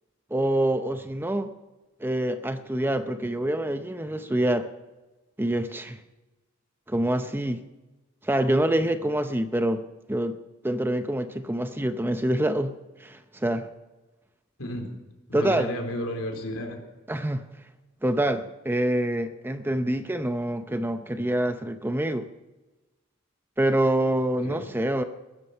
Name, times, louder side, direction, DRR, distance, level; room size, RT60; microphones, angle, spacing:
voice 1, 0.3-1.5 2.0-4.7 5.4-6.0 6.9-7.6 8.2-9.8 10.1-10.4 10.6-12.7 13.0-13.7 15.3-15.7 17.1-17.4 18.0-22.3 23.6-25.0, right 1 dB, 10° right, 9 dB, 0.6 m, -26 dB
voice 2, 15.3-16.8 24.4-24.7, equal, 70° left, 4 dB, 3.6 m, -32 dB
16.0 x 13.5 x 5.5 m, 1.1 s
head